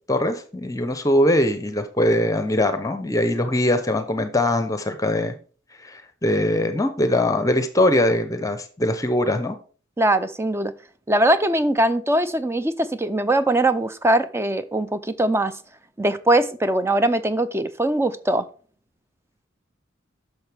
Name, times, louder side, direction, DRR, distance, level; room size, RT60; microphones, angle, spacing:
voice 1, 0.0-5.3 5.8-9.6, left 1 dB, 15° left, 0.8 m, -21 dB
voice 2, 10.0-10.7 11.1-15.6 16.0-18.5, right 1 dB, 15° right, 0.5 m, -21 dB
10.5 x 6.6 x 3.5 m
head